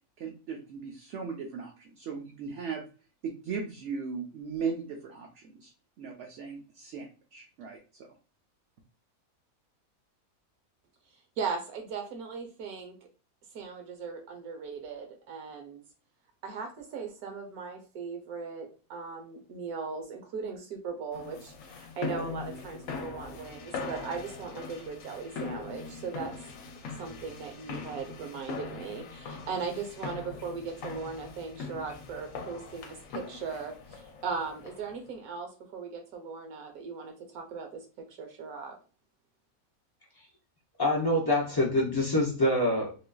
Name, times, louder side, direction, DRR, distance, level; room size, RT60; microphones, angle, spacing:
voice 1, 0.2-2.9 3.2-5.7 6.0-8.1, right 5 dB, 60° right, 1 dB, 0.8 m, -38 dB
voice 2, 11.4-13.0 13.5-15.8 16.4-26.3 27.0-38.8, right 5 dB, 85° right, 4 dB, 1.3 m, -38 dB
sound 1, 21.1-35.0, left 4 dB, 70° left, 0.9 m, -41 dB
voice 3, 40.8-42.9, left 1 dB, 40° left, -2 dB, 0.3 m, -25 dB
3.7 x 2.5 x 2.2 m, 0.35 s
omnidirectional pair, 1.5 m